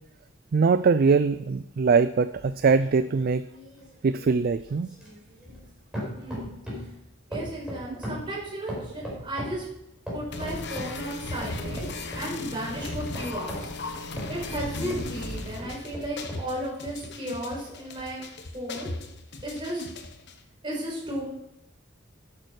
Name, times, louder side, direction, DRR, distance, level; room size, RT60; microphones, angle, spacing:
voice 1, 0.5-3.5 4.0-4.9, right 5 dB, 50° right, 13 dB, 0.4 m, -22 dB
sound 1, 2.3-5.7 5.9-6.9 7.3-9.6 10.1-11.0 11.4-12.3 12.8-15.1 15.6-16.5 17.0-17.1, equal, 5° right, 4.7 m, -38 dB
voice 2, 6.1-6.6 7.3-9.6 10.1-11.9 12.1-13.7 14.3-18.2 18.5-18.9 19.4-19.9 20.6-21.3, right 1 dB, 25° right, -4 dB, 5.0 m, -34 dB
sound 2, 10.3-20.3, left 2 dB, 60° left, 1.2 m, -36 dB
11.0 x 8.8 x 4.8 m, 0.85 s
head